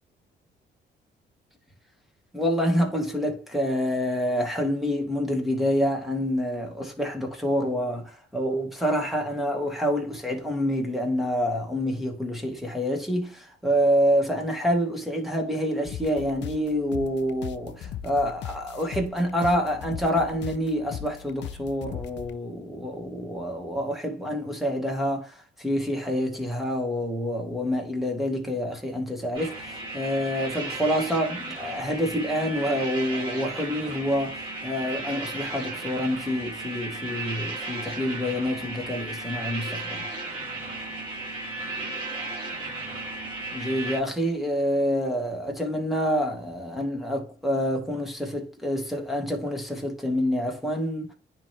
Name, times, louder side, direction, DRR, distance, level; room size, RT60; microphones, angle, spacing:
voice 1, 2.3-40.0 43.5-51.1, equal, ahead, 2.1 m, -27 dB
sound 1, 15.8-22.4, left 9 dB, 65° left, 0.5 m, -39 dB
sound 2, 29.3-44.0, right 2 dB, 25° right, 3.0 m, -35 dB
9.9 x 3.5 x 2.9 m
cardioid pair, 90°, 20 cm